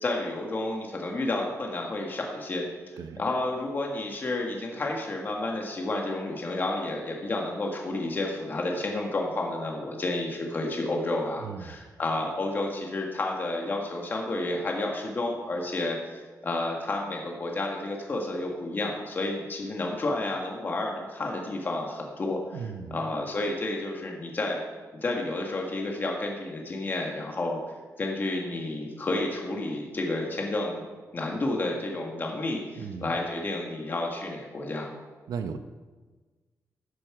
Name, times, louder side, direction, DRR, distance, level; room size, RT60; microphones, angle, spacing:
voice 1, 0.0-2.6 3.2-22.6 22.9-24.6 25.0-27.6 28.0-30.8 31.1-34.9, left 2 dB, 35° left, 0 dB, 1.5 m, -31 dB
voice 2, 11.4-11.8 22.5-23.1 32.8-33.1 35.3-35.6, right 6 dB, 90° right, 9 dB, 0.7 m, -36 dB
13.5 x 9.6 x 4.8 m, 1.3 s
wide cardioid pair, 155°, 6 cm